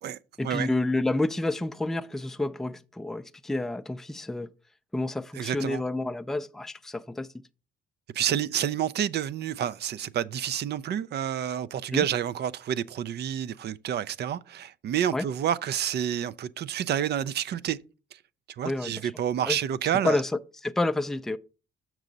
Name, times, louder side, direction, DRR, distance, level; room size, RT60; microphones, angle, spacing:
voice 1, 0.4-4.5 4.9-7.3 11.9-12.1 15.1-15.2 18.6-19.1 19.5-19.6 20.0-21.4, left 2 dB, ahead, 0.4 m, -29 dB
voice 2, 5.3-5.8 8.1-17.8 18.6-20.2, right 10 dB, 60° right, 0.4 m, -29 dB
6.5 x 6.1 x 3.9 m
cardioid pair, 90°, 20 cm